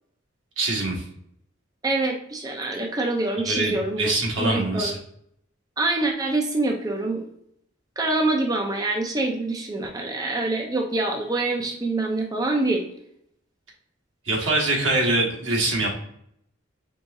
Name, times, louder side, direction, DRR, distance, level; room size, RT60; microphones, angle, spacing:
voice 1, 0.6-1.0 3.4-5.0 14.3-15.9, right 2 dB, 80° right, -2 dB, 1.5 m, -24 dB
voice 2, 1.8-4.1 4.4-4.9 5.8-7.2 8.0-12.8, right 2 dB, 20° right, 2 dB, 0.5 m, -25 dB
4.6 x 3.5 x 2.6 m, 0.72 s
head